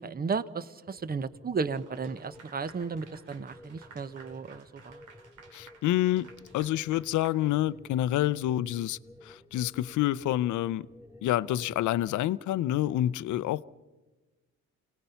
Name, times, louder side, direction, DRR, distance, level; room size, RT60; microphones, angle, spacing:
voice 1, 0.0-5.0, right 5 dB, 30° right, 0.9 m, -34 dB
sound 1, 0.9-12.1, left 1 dB, 10° right, 2.7 m, -54 dB
Clapping / Applause, 1.7-8.1, right 5 dB, 85° right, 2.6 m, -55 dB
voice 2, 5.5-6.3 6.5-10.9 11.2-13.6, left 13 dB, 75° left, 0.6 m, -28 dB
28.5 x 18.5 x 5.7 m
cardioid pair, 90°, 30 cm